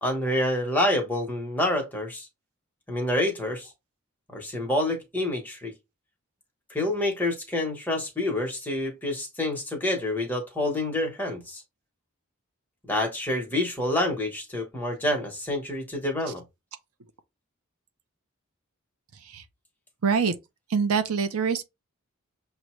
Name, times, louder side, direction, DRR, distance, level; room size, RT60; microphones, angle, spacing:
voice 1, 0.0-2.3 2.9-3.7 4.3-5.7 6.7-11.6 12.9-16.4, left 1 dB, 10° left, 1.0 m, -27 dB
voice 2, 20.0-20.3 20.7-21.6, right 6 dB, 85° right, 0.6 m, -24 dB
6.5 x 2.2 x 3.1 m
head